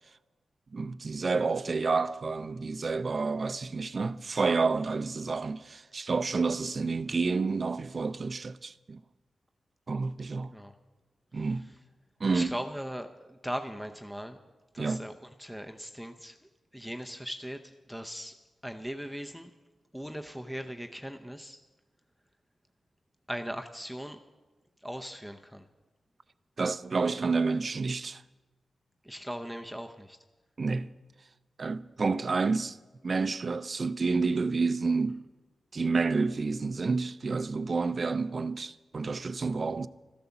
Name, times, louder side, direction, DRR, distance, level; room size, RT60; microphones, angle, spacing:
voice 1, 0.7-9.0 9.9-10.5 11.3-11.7 12.2-12.6 14.8-15.0 26.6-28.2 30.6-30.9 31.6-32.8 33.0-35.2 35.7-39.9, right 4 dB, 40° right, 0.5 m, -29 dB
voice 2, 12.3-14.4 14.7-15.1 15.4-16.4 16.7-18.4 18.6-19.5 19.9-21.6 23.3-24.2 24.8-25.6 29.0-30.2, equal, ahead, 0.7 m, -39 dB
14.0 x 12.0 x 7.1 m
wide cardioid pair, 110°, 0 cm